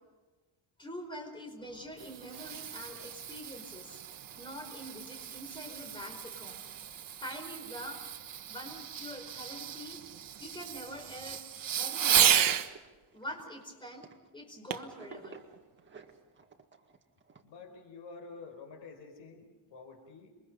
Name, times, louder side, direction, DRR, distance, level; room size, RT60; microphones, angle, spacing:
voice 1, 0.8-4.0 4.4-6.6 7.2-8.0 8.5-10.0 10.4-11.4 11.8-12.5 13.1-14.1 14.3-15.4, equal, 10° left, 3 dB, 4.9 m, -44 dB
Fireworks, 1.7-12.7 14.7-15.0 15.6-15.7, right 9 dB, 50° right, 1.3 m, -33 dB
sound 1, 12.7-14.5 14.8-17.4, right 5 dB, 25° right, 2.0 m, -53 dB
voice 2, 17.4-20.3, left 4 dB, 85° left, 5 dB, 4.8 m, -49 dB
27.5 x 23.0 x 5.4 m, 1.3 s
cardioid pair, 135°, 43 cm